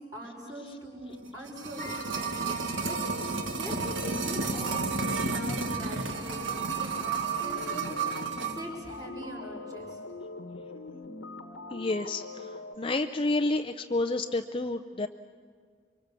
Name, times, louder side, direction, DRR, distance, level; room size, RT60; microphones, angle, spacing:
voice 1, 0.1-10.0, equal, 20° right, -1 dB, 5.5 m, -42 dB
sound 1, 1.2-8.7 8.9-9.0, right 4 dB, 80° right, 1.7 m, -32 dB
sound 2, 1.8-12.7, left 3 dB, 85° left, 1.2 m, -43 dB
voice 2, 11.7-15.1, left 2 dB, 30° left, 6 dB, 0.6 m, -30 dB
25.0 x 24.5 x 7.0 m, 2.1 s
head